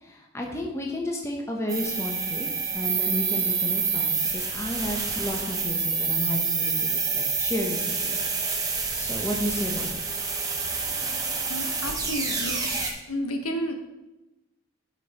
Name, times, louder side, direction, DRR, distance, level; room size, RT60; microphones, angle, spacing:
voice 1, 0.0-2.5 2.7-8.2 8.9-10.0, left 1 dB, 10° left, 0 dB, 0.9 m, -32 dB
sound 1, 1.7-12.9, right 4 dB, 15° right, 0.8 m, -28 dB
voice 2, 11.5-12.6 13.1-13.7, equal, 80° left, 5 dB, 1.0 m, -31 dB
8.3 x 5.1 x 4.2 m, 1.0 s
head